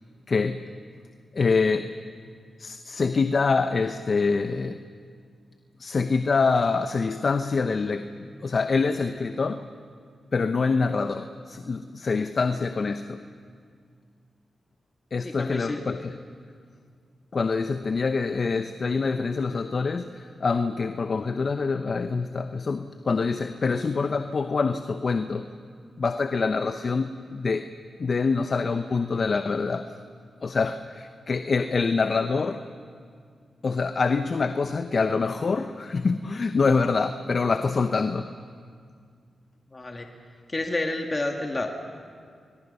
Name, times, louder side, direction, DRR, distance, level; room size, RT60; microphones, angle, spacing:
voice 1, 0.3-0.6 1.3-1.9 2.6-4.8 5.8-9.6 10.3-13.2 15.1-16.2 17.3-25.5 26.0-27.6 28.0-29.9 30.4-32.6 33.6-38.3, left 4 dB, 60° left, 9 dB, 0.9 m, -25 dB
voice 2, 15.2-15.8 39.7-40.1 40.5-41.7, left 2 dB, 35° left, 2 dB, 2.3 m, -29 dB
29.0 x 22.0 x 5.6 m, 2.1 s
supercardioid pair, 45°, 0 cm